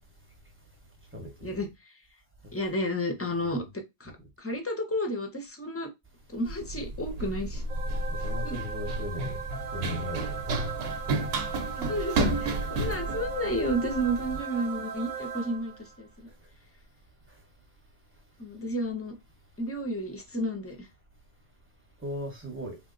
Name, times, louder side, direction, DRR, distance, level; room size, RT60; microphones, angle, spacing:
voice 1, 1.1-1.6 2.4-2.5 3.3-3.5 4.0-4.1 8.1-9.3 9.7-10.5 22.0-22.8, left 1 dB, 15° right, 0.7 m, -38 dB
voice 2, 2.5-4.1 4.4-5.9 6.3-7.6 8.2-8.6 11.7-16.3 18.4-19.2 19.6-20.9, equal, 20° left, 0.4 m, -32 dB
Run, 6.5-14.4, right 2 dB, 80° right, 0.9 m, -32 dB
sound 1, 7.7-15.9, right 6 dB, 55° right, 0.7 m, -38 dB
3.0 x 2.0 x 3.7 m
omnidirectional pair, 1.1 m